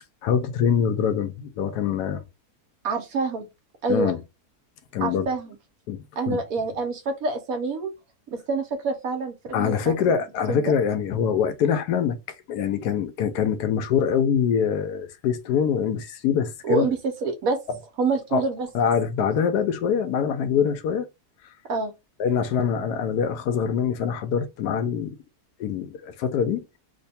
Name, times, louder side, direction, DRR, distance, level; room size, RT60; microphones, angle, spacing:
voice 1, 0.2-2.2 3.9-4.2 4.9-5.3 5.9-6.4 9.5-12.2 12.5-16.9 18.3-18.4 18.7-21.1 22.2-25.2 25.6-26.6, left 7 dB, 85° left, 1.2 m, -24 dB
voice 2, 2.8-3.5 3.8-4.1 5.0-5.6 6.2-7.9 8.3-10.1 10.5-10.7 16.6-17.6 18.0-18.7 21.7-21.9, right 4 dB, 65° right, 1.2 m, -27 dB
3.1 x 2.2 x 4.1 m
omnidirectional pair, 1.7 m